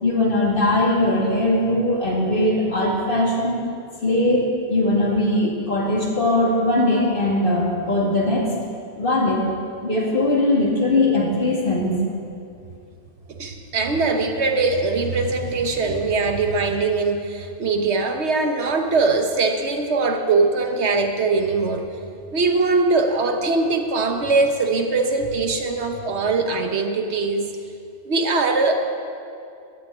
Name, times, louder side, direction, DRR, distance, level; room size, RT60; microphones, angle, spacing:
voice 1, 0.0-3.6 4.0-8.5 9.0-9.5 9.8-12.0, left 1 dB, 50° left, -3 dB, 2.4 m, -20 dB
voice 2, 13.4-21.9 22.3-27.5 28.1-28.7, right 3 dB, 75° right, 5 dB, 1.3 m, -21 dB
14.0 x 6.4 x 9.6 m, 2.5 s
omnidirectional pair, 1.2 m